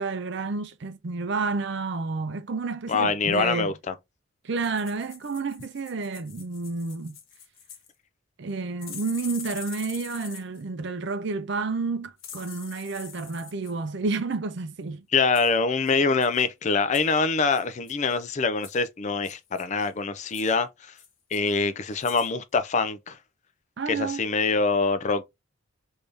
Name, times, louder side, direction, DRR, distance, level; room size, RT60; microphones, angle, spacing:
voice 1, 0.0-3.7 4.4-7.2 8.4-15.0 23.8-24.2, right 4 dB, 60° right, 0.5 m, -30 dB
voice 2, 2.9-3.9 15.1-20.9 21.3-23.2 23.9-25.2, left 4 dB, 35° left, 0.3 m, -24 dB
sound 1, 4.6-7.9 8.8-10.6 12.2-13.7 15.3-15.5 15.8-15.9 16.2-16.4 16.9-17.2 17.5-18.2 18.6-18.8 19.2-19.9 20.3-20.5 21.0-21.6 21.9-22.3 22.6-22.7, left 8 dB, 80° left, 1.0 m, -44 dB
3.5 x 2.7 x 3.2 m
head